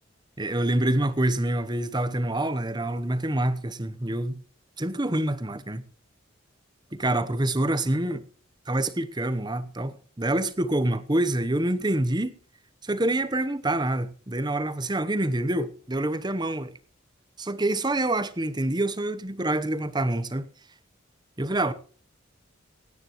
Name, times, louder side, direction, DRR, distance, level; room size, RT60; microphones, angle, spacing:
voice 1, 0.4-4.4 4.8-5.8 6.9-8.2 8.7-12.4 12.8-16.7 17.4-20.5 21.4-21.7, right 1 dB, 20° right, 0.9 m, -26 dB
26.0 x 9.8 x 3.1 m
head